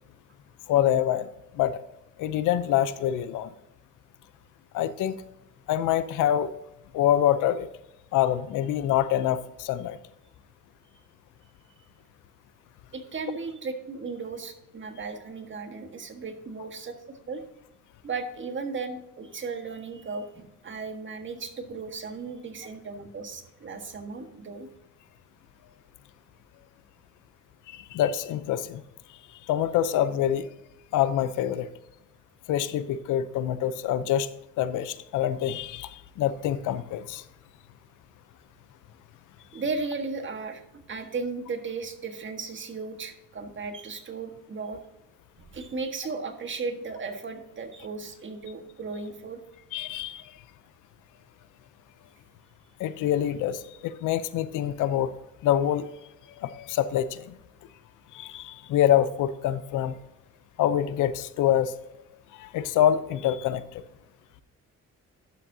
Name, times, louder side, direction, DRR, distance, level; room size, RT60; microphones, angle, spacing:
voice 1, 0.7-1.3 1.5-1.8 2.2-3.5 4.7-5.2 5.7-6.5 6.9-7.7 8.1-10.0 27.7-28.8 29.5-30.5 30.9-31.7 32.5-34.3 34.6-37.2 49.7-50.2 52.8-55.1 55.4-55.9 56.4-57.3 58.1-60.0 60.6-61.7 62.3-63.8, left 11 dB, 90° left, 14 dB, 0.7 m, -25 dB
voice 2, 12.9-16.9 17.3-17.4 18.0-24.7 39.5-44.8 45.5-49.4, right 4 dB, 40° right, 6 dB, 1.5 m, -35 dB
11.5 x 7.3 x 2.7 m, 0.88 s
cardioid pair, 90°, 30 cm